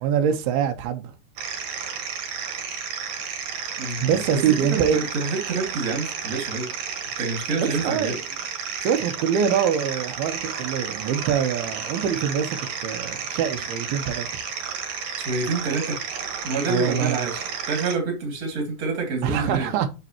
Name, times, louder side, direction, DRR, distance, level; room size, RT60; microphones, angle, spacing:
voice 1, 0.0-1.1 4.0-5.0 7.6-8.2 8.8-14.3 16.7-17.3 19.2-19.9, right 8 dB, 90° right, 2.8 m, -24 dB
sound 1, 1.4-18.0, right 6 dB, 60° right, 2.4 m, -32 dB
voice 2, 3.8-6.7 7.2-8.1 15.2-16.0 16.4-19.7, right 4 dB, 30° right, 2.2 m, -27 dB
7.4 x 6.7 x 2.9 m
omnidirectional pair, 4.4 m